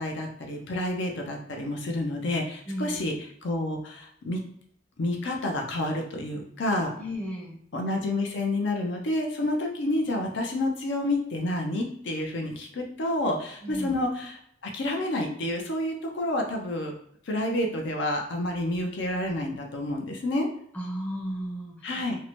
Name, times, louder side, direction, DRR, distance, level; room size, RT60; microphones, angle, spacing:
voice 1, 0.0-4.4 5.0-6.9 7.7-16.9 17.3-20.5 21.8-22.2, left 1 dB, 65° left, 2 dB, 0.5 m, -29 dB
voice 2, 2.7-3.1 7.0-7.5 13.6-14.0 20.7-22.0, equal, 10° left, -3 dB, 0.6 m, -34 dB
2.7 x 2.1 x 2.9 m, 0.67 s
head